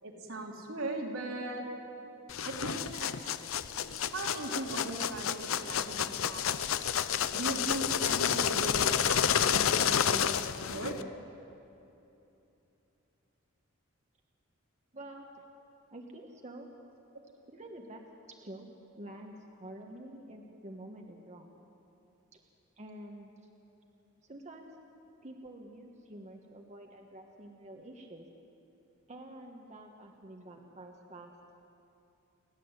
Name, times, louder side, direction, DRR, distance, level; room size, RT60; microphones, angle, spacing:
voice 1, 0.0-1.6 2.4-3.2 4.1-6.5 7.3-11.0, right 2 dB, 85° right, -1 dB, 3.4 m, -39 dB
sound 1, 2.3-11.0, left 8 dB, 75° left, 0.7 m, -30 dB
voice 2, 14.9-15.4 15.9-16.7 17.5-18.7 19.0-21.5 22.3-22.4 22.8-23.3 24.2-24.7 25.2-28.3 29.1-31.3, right 1 dB, 35° right, 2 dB, 1.4 m, -48 dB
29.5 x 11.0 x 8.1 m, 2.9 s
head